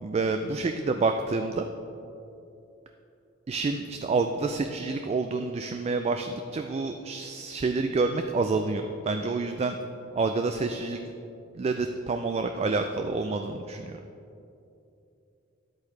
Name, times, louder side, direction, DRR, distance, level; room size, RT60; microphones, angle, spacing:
voice 1, 0.0-1.6 3.5-9.8 10.1-11.0 11.5-14.0, right 3 dB, 30° right, 6 dB, 0.3 m, -28 dB
10.5 x 8.2 x 3.3 m, 2.7 s
head